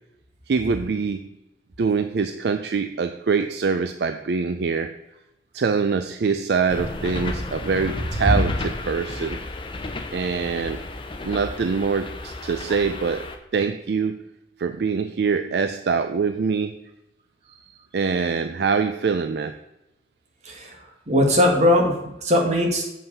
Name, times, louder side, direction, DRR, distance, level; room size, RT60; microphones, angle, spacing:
voice 1, 0.5-1.3 1.8-4.9 5.5-9.4 10.1-10.8 11.2-13.3 13.5-14.2 14.6-16.8 17.9-19.5, right 5 dB, 65° right, 9 dB, 0.4 m, -24 dB
sound 1, 6.7-13.4, left 2 dB, 30° left, 0.8 m, -33 dB
voice 2, 21.1-22.9, left 1 dB, 40° right, 1 dB, 1.8 m, -19 dB
7.6 x 5.6 x 5.3 m, 0.91 s
head